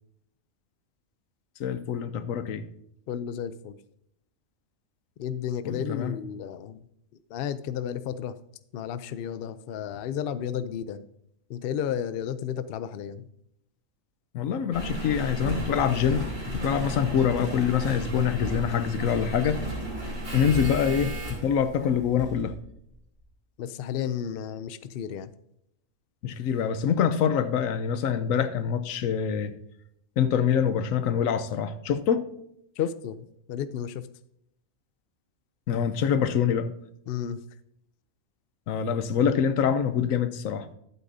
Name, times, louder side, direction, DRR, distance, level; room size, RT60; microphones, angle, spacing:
voice 1, 1.6-2.6 5.6-6.2 14.3-19.6 20.3-22.5 26.2-29.5 30.2-32.2 35.7-36.7 38.7-40.7, left 8 dB, 85° left, 12 dB, 1.1 m, -25 dB
voice 2, 3.1-3.7 5.2-6.8 7.3-8.3 8.7-11.0 11.5-13.2 20.4-20.6 23.6-25.3 32.8-34.1 37.1-37.4, left 9 dB, 65° left, 13 dB, 0.6 m, -32 dB
Engine, 14.7-22.6 23.2-23.3, right 1 dB, 75° right, 3.4 m, -34 dB
12.0 x 8.2 x 2.7 m, 0.76 s
omnidirectional pair, 1.4 m